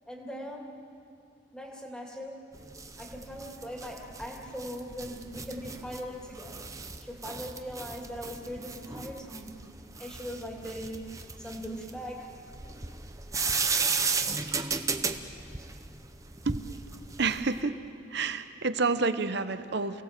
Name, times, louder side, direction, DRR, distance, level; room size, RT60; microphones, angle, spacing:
voice 1, 0.1-0.8 1.5-2.5 3.0-6.7 7.0-9.6 10.0-11.0 11.4-12.5, equal, 5° left, -1 dB, 2.6 m, -40 dB
sound 1, 2.5-17.6, right 4 dB, 15° right, 0.8 m, -35 dB
voice 2, 17.2-17.8 18.1-20.0, right 4 dB, 55° right, 11 dB, 0.9 m, -29 dB
28.5 x 18.0 x 7.6 m, 2.4 s
head